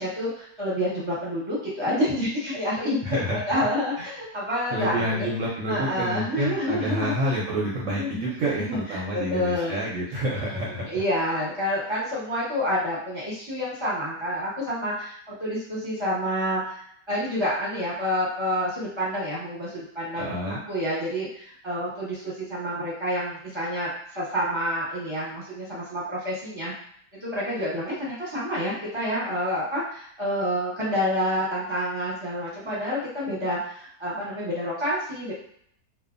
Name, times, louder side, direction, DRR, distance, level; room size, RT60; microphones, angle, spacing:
voice 1, 0.0-3.2 3.5-5.2 5.7-7.1 7.9-8.2 8.6-9.8 10.3-23.9 24.1-26.7 27.1-35.3, equal, 20° right, -8 dB, 0.8 m, -28 dB
voice 2, 3.0-3.4 4.7-10.9 20.2-20.6, equal, 65° right, -4 dB, 0.8 m, -28 dB
2.6 x 2.2 x 2.5 m, 0.64 s
omnidirectional pair, 1.8 m